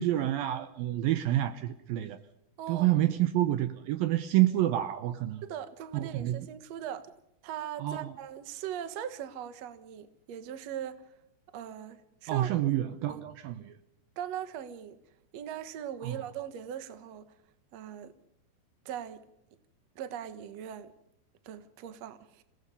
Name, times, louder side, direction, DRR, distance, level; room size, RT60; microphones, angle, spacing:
voice 1, 0.0-2.2 2.7-5.4 5.9-6.4 7.8-8.1 12.3-13.8 16.0-16.2, right 14 dB, 75° right, 2.4 m, -28 dB
voice 2, 2.6-2.9 5.4-7.1 7.4-11.1 11.5-12.5 13.1-13.2 14.2-15.0 15.3-17.4 17.7-18.1 18.9-19.2 20.0-20.9 21.4-22.4, right 10 dB, 60° right, 1.9 m, -40 dB
27.0 x 18.0 x 5.4 m
omnidirectional pair, 4.7 m